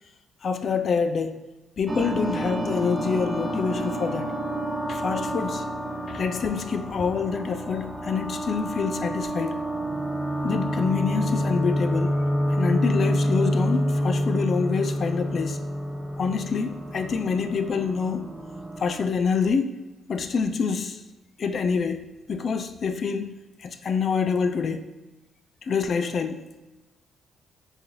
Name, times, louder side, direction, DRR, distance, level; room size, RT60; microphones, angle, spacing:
voice 1, 0.4-1.4 1.8-4.3 4.9-5.7 6.1-9.6 10.4-12.2 12.6-15.6 16.2-18.3 18.8-19.8 20.1-21.0 21.4-23.3 23.6-24.9 25.6-26.6, left 5 dB, 50° left, 9 dB, 0.3 m, -26 dB
sound 1, 1.9-19.0, equal, 10° right, 0.5 m, -28 dB
3.9 x 2.6 x 2.9 m, 1.1 s
cardioid pair, 90°, 0 cm